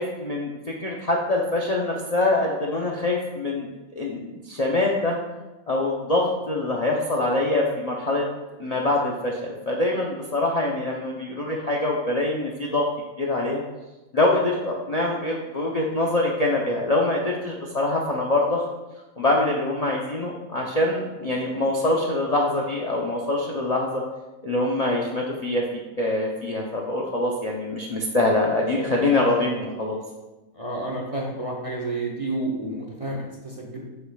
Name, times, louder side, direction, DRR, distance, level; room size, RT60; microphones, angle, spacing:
voice 1, 0.0-3.7 3.9-5.2 5.7-8.3 8.6-12.9 13.2-13.6 14.1-18.6 19.2-24.0 24.4-30.0, left 2 dB, 40° left, -2 dB, 0.5 m, -24 dB
voice 2, 30.5-33.9, right 2 dB, 30° right, -2 dB, 0.7 m, -30 dB
7.1 x 6.6 x 2.3 m, 1.1 s
omnidirectional pair, 1.5 m